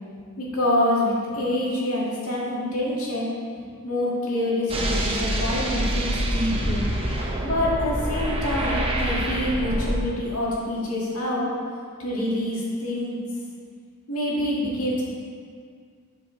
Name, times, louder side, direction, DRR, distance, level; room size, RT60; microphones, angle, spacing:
voice 1, 0.4-3.3 3.8-6.9 7.4-11.5 12.0-13.2 14.1-15.0, left 1 dB, 75° left, -5 dB, 1.9 m, -26 dB
sound 1, 4.7-10.0, right 1 dB, 25° right, 0.8 m, -26 dB
10.0 x 4.8 x 3.9 m, 2.1 s
head